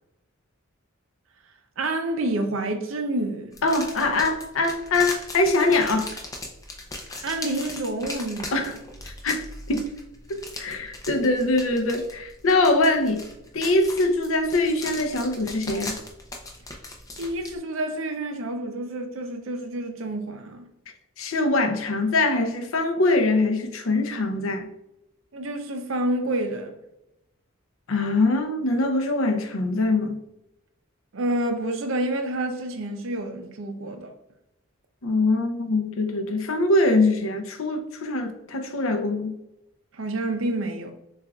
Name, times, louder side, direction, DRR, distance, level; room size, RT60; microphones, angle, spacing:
voice 1, 1.8-3.5 7.2-8.7 17.2-20.7 25.3-26.7 31.1-34.1 39.9-40.9, right 1 dB, 65° right, 0.6 m, -28 dB
sound 1, 3.5-17.5, left 2 dB, 15° left, 0.5 m, -38 dB
voice 2, 3.6-6.1 8.5-8.7 9.2-9.9 10.3-13.2 13.5-15.9 21.2-24.7 27.9-30.2 35.0-39.3, left 2 dB, 70° left, 0.6 m, -23 dB
6.6 x 2.4 x 2.3 m
head